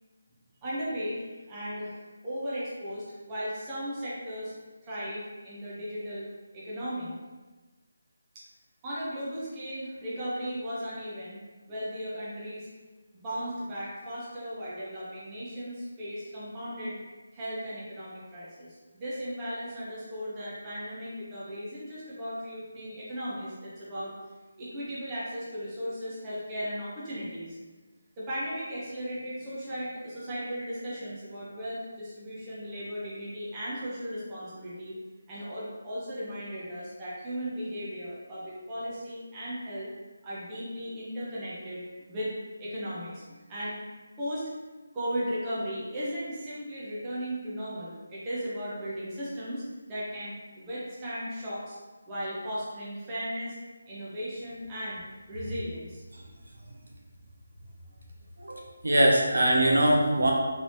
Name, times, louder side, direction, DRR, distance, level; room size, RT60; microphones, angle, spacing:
voice 1, 0.6-4.5 4.8-7.2 8.3-8.4 8.8-11.4 11.7-12.7 13.1-17.0 17.3-24.1 24.6-27.6 28.2-34.9 35.3-39.9 40.2-41.8 42.1-42.3 42.6-43.8 44.2-44.5 44.9-51.8 52.1-53.6 53.9-55.0 55.3-56.0, equal, 10° right, -9 dB, 0.5 m, -36 dB
voice 2, 58.4-60.3, right 1 dB, 75° right, -1 dB, 0.8 m, -22 dB
3.1 x 2.7 x 3.1 m, 1.3 s
figure-of-eight pair, 175°, 0 cm